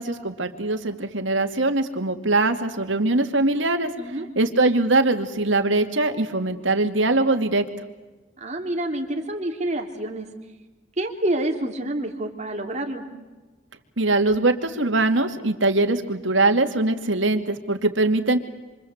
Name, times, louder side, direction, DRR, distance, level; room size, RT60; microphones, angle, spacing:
voice 1, 0.0-3.9 4.4-7.6 14.0-18.4, right 2 dB, 80° right, 5 dB, 2.5 m, -22 dB
voice 2, 4.0-4.3 8.4-10.3 11.0-13.0, right 1 dB, 40° right, 2 dB, 3.3 m, -28 dB
27.0 x 25.5 x 8.1 m, 1.2 s
head